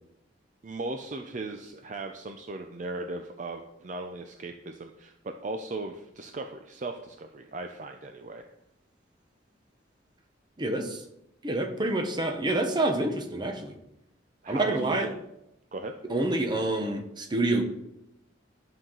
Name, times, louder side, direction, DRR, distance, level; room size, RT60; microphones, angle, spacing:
voice 1, 0.6-5.1 5.4-8.5 14.4-15.2 15.7-15.9, right 2 dB, 40° right, 5 dB, 0.5 m, -37 dB
voice 2, 10.6-11.0 11.4-13.7 14.5-15.1 16.1-17.6, right 2 dB, 25° right, 4 dB, 1.0 m, -27 dB
11.5 x 5.8 x 3.9 m, 0.83 s
head